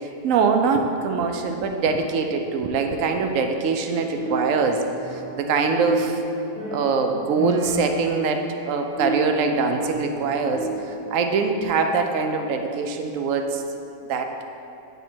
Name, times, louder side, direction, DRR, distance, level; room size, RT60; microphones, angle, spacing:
voice 1, 0.0-4.8 5.1-6.2 6.7-13.6 14.1-14.3, right 4 dB, 70° right, 5 dB, 0.9 m, -23 dB
sound 1, 4.1-5.5 5.7-11.0, right 1 dB, 5° left, 0.7 m, -31 dB
9.2 x 3.6 x 4.3 m, 2.9 s
omnidirectional pair, 1.5 m